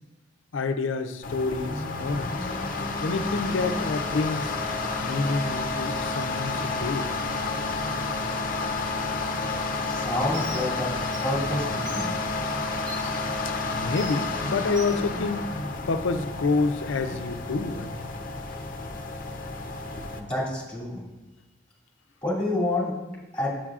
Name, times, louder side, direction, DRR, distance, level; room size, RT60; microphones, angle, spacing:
voice 1, 0.5-2.5 3.0-4.5 5.0-7.1 13.7-15.5 15.9-18.1, left 3 dB, 85° left, 8 dB, 0.5 m, -28 dB
sound 1, 1.2-20.2, left 3 dB, 45° left, 0.6 m, -30 dB
voice 2, 9.8-10.9 11.2-12.1 17.1-17.2 18.5-18.6 20.2-21.0 22.2-23.0 23.3-23.5, left 1 dB, 5° left, -6 dB, 2.5 m, -28 dB
Bird, 10.3-10.6 11.0-11.2 11.9-12.0 12.9-13.1 14.0-14.1 14.7-14.9, right 1 dB, 75° right, 2.5 m, -39 dB
8.7 x 7.4 x 2.4 m, 1.1 s
head